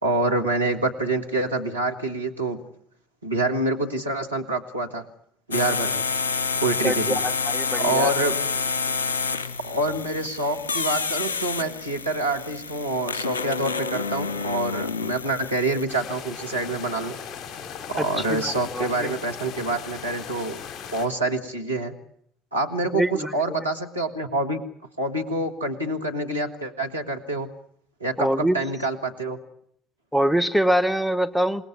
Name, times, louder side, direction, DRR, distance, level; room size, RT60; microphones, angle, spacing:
voice 1, 0.0-2.6 3.2-5.0 5.5-6.0 6.6-7.2 7.8-8.4 9.6-17.2 17.9-20.6 20.9-22.0 22.5-24.6 25.0-27.5 28.0-29.4, right 2 dB, 85° right, 1 dB, 1.8 m, -26 dB
sound 1, 5.5-15.8, left 4 dB, 80° left, 1.2 m, -28 dB
voice 2, 6.8-8.1 18.0-19.1 22.9-23.3 28.2-28.6 30.1-31.7, equal, ahead, 15 dB, 1.4 m, -24 dB
sound 2, 15.9-21.1, left 7 dB, 45° left, 5.2 m, -38 dB
28.0 x 19.5 x 9.8 m, 0.71 s
figure-of-eight pair, 55°, 0 cm